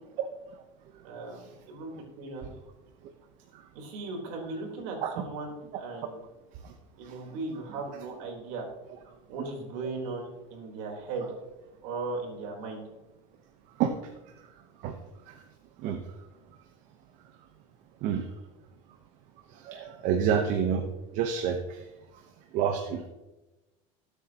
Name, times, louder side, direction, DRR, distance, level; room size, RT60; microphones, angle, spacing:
voice 1, 1.0-2.5 3.7-6.2 7.0-8.6 9.0-11.3 11.8-12.8, right 3 dB, 70° right, 0 dB, 3.9 m, -37 dB
voice 2, 19.5-20.8 21.1-21.8 22.5-23.0, right 8 dB, 50° right, 5 dB, 1.0 m, -28 dB
18.5 x 8.2 x 3.0 m, 1.1 s
supercardioid pair, 135°, 16 cm